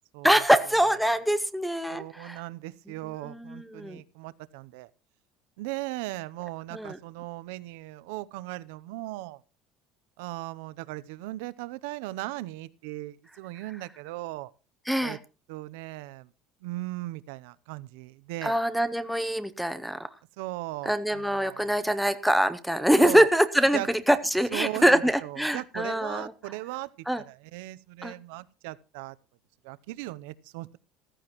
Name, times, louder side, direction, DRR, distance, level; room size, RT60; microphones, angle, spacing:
voice 1, 0.2-2.4 3.2-4.0 6.7-7.0 14.9-15.2 18.4-20.1 20.9-26.3 27.1-27.2 28.0-28.1, equal, ahead, 0.7 m, -24 dB
voice 2, 1.9-4.9 5.6-9.4 10.2-14.5 15.0-15.2 15.5-16.3 16.6-18.6 20.4-21.8 23.0-23.3 23.7-23.9 24.5-26.9 27.2-29.2 29.6-30.8, right 18 dB, 90° right, 0.6 m, -38 dB
14.5 x 14.0 x 3.0 m
cardioid pair, 170°, 0 cm